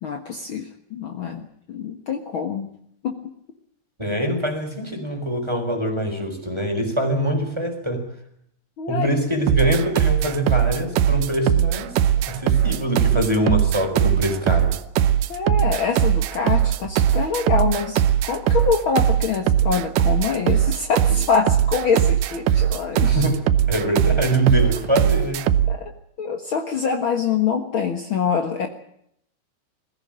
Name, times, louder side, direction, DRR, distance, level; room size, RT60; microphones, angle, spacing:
voice 1, 0.0-2.7 3.0-3.2 8.8-9.1 15.3-23.3 25.7-25.9 26.2-28.7, left 6 dB, 65° left, 4 dB, 1.2 m, -25 dB
voice 2, 4.0-8.1 8.9-11.9 12.3-14.7 23.0-25.4, right 1 dB, 5° right, 3 dB, 4.0 m, -23 dB
sound 1, 9.5-25.8, right 10 dB, 75° right, 2.0 m, -20 dB
22.0 x 15.5 x 8.9 m, 0.70 s
omnidirectional pair, 4.8 m